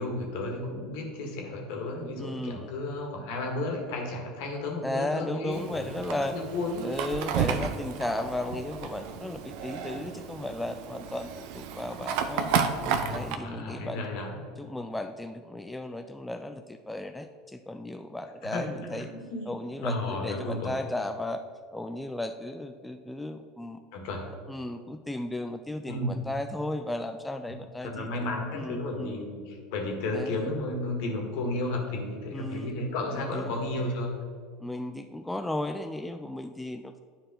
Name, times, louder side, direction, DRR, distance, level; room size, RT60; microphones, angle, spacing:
voice 1, 0.0-5.9 6.3-6.9 13.0-14.4 18.4-18.7 18.9-20.7 23.9-24.3 25.9-26.3 27.8-34.1, left 2 dB, 60° left, 1 dB, 1.8 m, -33 dB
voice 2, 2.2-2.7 4.8-6.4 6.8-12.5 13.1-14.0 14.6-19.1 19.5-21.4 21.7-23.8 24.5-28.1 28.5-29.2 30.1-30.3 32.3-32.7 33.3-33.5 34.6-37.0, left 1 dB, 5° left, 6 dB, 0.4 m, -35 dB
Fire, 5.5-13.4, right 7 dB, 60° right, 0.6 m, -32 dB
10.5 x 4.7 x 3.8 m, 2.1 s
figure-of-eight pair, 75°, 0 cm